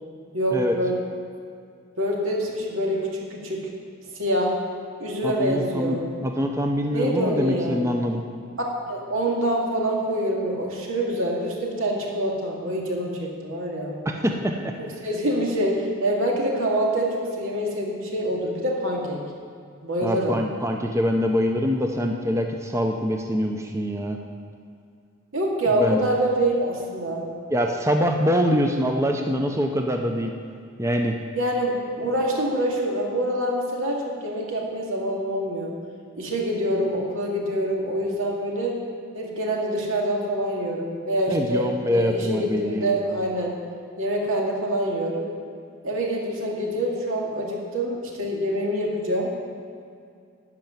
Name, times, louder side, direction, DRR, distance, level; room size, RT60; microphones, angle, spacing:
voice 1, 0.3-0.9 2.0-3.6 4.2-4.5 5.0-6.1 6.9-7.8 8.9-14.0 14.8-19.2 19.8-20.4 25.3-27.3 31.3-35.7 36.2-38.8 39.1-43.5 44.0-45.3 45.8-49.4, right 1 dB, 85° right, -1 dB, 2.2 m, -26 dB
voice 2, 5.2-8.2 14.1-14.7 20.0-24.2 25.8-26.0 27.5-30.3 30.8-31.2 41.3-42.9, equal, 15° right, 3 dB, 0.6 m, -24 dB
12.0 x 5.8 x 9.1 m, 2.3 s
head